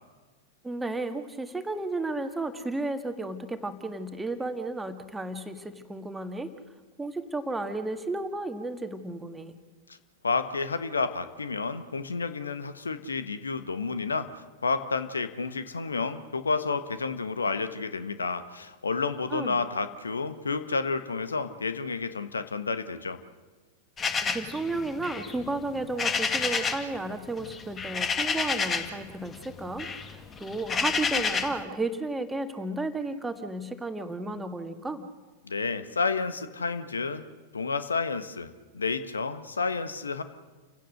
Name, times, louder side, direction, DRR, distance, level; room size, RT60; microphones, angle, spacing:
voice 1, 0.6-6.5 7.0-9.5 19.3-19.6 24.2-35.0, right 2 dB, 10° right, 8 dB, 1.9 m, -33 dB
voice 2, 10.2-14.3 14.6-23.2 35.4-37.2 37.5-40.2, left 4 dB, 80° left, 11 dB, 1.4 m, -30 dB
sound 1, 24.0-26.9 27.2-29.0 29.3-31.6, left 5 dB, 20° left, 2.1 m, -29 dB
29.5 x 17.0 x 6.5 m, 1.3 s
figure-of-eight pair, 95°, 0 cm